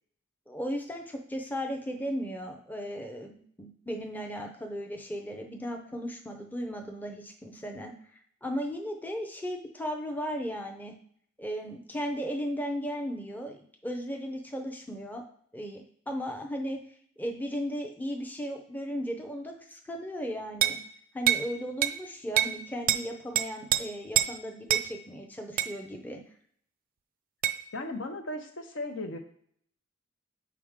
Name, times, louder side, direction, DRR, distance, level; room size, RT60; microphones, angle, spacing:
voice 1, 0.5-10.9 11.4-15.2 15.5-16.8 17.2-20.8 21.1-26.2, equal, 10° left, 3 dB, 0.6 m, -36 dB
sound 1, 20.6-20.8 21.3-21.5 21.8-22.0 22.4-22.6 22.9-23.0 23.4-23.8 24.2-24.3 24.7-24.9 25.6-25.7 27.4-27.6, right 11 dB, 45° right, 0.4 m, -25 dB
voice 2, 27.7-29.2, left 2 dB, 70° left, 5 dB, 0.8 m, -36 dB
6.2 x 4.7 x 3.6 m, 0.63 s
head